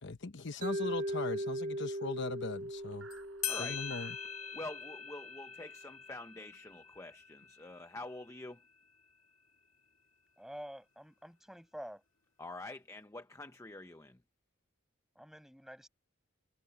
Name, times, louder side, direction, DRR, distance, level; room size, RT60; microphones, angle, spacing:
voice 1, 0.0-3.1 3.6-4.2, left 3 dB, 60° left, 1.0 m, -39 dB
Mallet percussion, 0.6-4.7, right 1 dB, 40° right, 2.6 m, -39 dB
sound 1, 2.3-6.5, right 5 dB, 80° right, 7.4 m, -60 dB
sound 2, 3.1-3.2 3.4-8.5, left 9 dB, 75° left, 2.2 m, -43 dB
voice 2, 3.5-3.8 4.5-8.6 12.4-14.2, left 2 dB, 15° left, 0.9 m, -46 dB
voice 3, 10.4-12.0 15.2-15.9, equal, ahead, 7.3 m, -48 dB
head